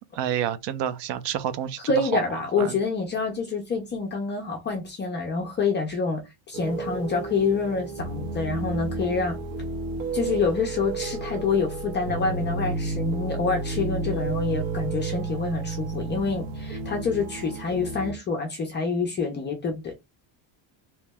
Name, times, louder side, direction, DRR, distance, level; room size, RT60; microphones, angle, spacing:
voice 1, 0.2-2.0 2.6-2.8, right 10 dB, 60° right, 0.5 m, -29 dB
voice 2, 1.9-6.2 6.5-9.4 10.1-19.9, left 4 dB, 25° left, 0.3 m, -27 dB
sound 1, 6.5-18.1, right 3 dB, 80° right, 1.0 m, -31 dB
2.9 x 2.1 x 3.3 m
cardioid pair, 170°, 50 cm